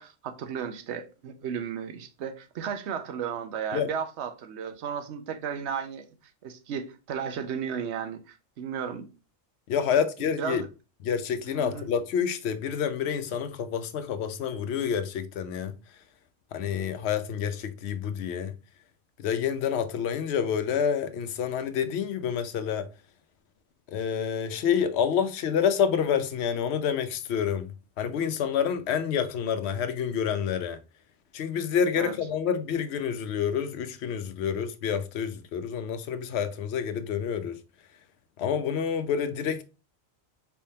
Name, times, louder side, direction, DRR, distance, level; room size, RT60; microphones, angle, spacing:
voice 1, 0.0-6.0 6.4-9.1 9.8-9.9 10.4-10.7 11.4-11.9 32.0-32.1, right 7 dB, 70° right, 0.9 m, -34 dB
voice 2, 9.7-10.6 11.0-15.7 16.5-18.5 19.2-22.9 23.9-27.7 28.0-30.8 31.3-37.6 38.4-39.6, left 7 dB, 70° left, 0.8 m, -28 dB
4.4 x 3.5 x 2.7 m
omnidirectional pair, 1.2 m